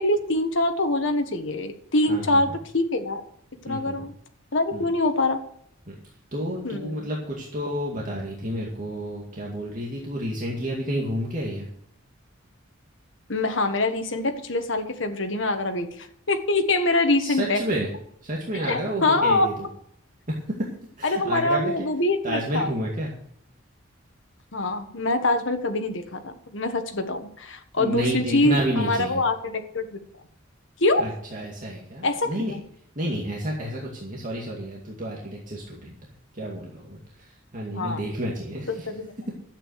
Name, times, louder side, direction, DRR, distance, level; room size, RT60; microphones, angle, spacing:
voice 1, 0.0-3.2 3.6-4.1 4.5-5.4 6.6-7.0 13.3-17.6 18.5-19.5 21.0-22.7 24.5-30.0 30.8-31.0 32.0-32.6 37.7-38.0 38.7-39.1, left 2 dB, 65° left, 6 dB, 1.5 m, -24 dB
voice 2, 2.1-2.6 3.7-4.1 4.7-4.9 5.9-6.0 6.3-11.7 17.2-17.9 18.2-19.7 20.3-20.7 21.0-21.9 22.2-23.1 27.8-29.2 31.0-32.5 33.0-36.0 36.3-38.9, equal, 40° right, -3 dB, 2.2 m, -30 dB
12.0 x 8.7 x 6.5 m, 0.68 s
head